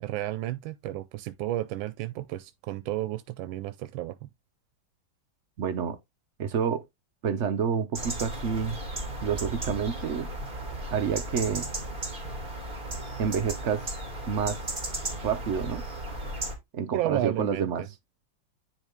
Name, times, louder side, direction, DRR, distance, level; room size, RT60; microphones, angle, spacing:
voice 1, 0.0-4.3 16.9-17.9, right 14 dB, 90° right, 1.4 m, -32 dB
voice 2, 5.6-6.0 6.4-6.8 7.2-8.8 9.2-10.3 10.9-11.7 13.2-13.8 14.3-14.6 15.2-15.8 16.7-17.8, right 7 dB, 65° right, 0.7 m, -28 dB
sound 1, 7.9-16.6, right 1 dB, 25° right, 2.6 m, -35 dB
10.0 x 3.8 x 3.5 m
omnidirectional pair, 2.1 m